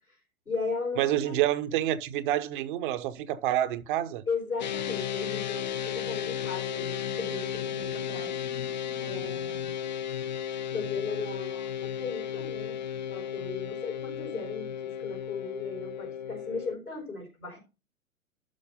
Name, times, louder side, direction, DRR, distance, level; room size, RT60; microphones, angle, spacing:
voice 1, 0.5-1.4 4.3-9.8 10.7-12.8 13.1-17.6, left 4 dB, 90° left, 4.3 m, -37 dB
voice 2, 1.0-4.2, right 13 dB, 35° right, 1.0 m, -28 dB
sound 1, 4.6-16.7, left 9 dB, 35° left, 0.4 m, -34 dB
12.0 x 4.3 x 5.5 m
figure-of-eight pair, 110°, 43 cm